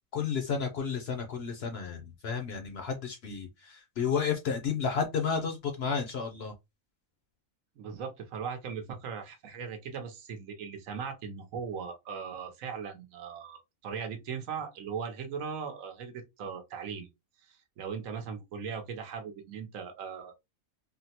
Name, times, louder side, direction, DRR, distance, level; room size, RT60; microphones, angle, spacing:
voice 1, 0.1-6.5, left 6 dB, 60° left, 0.7 m, -32 dB
voice 2, 7.8-17.1 17.4-20.3, right 6 dB, 70° right, 1.1 m, -39 dB
3.6 x 2.0 x 2.7 m
omnidirectional pair, 1.5 m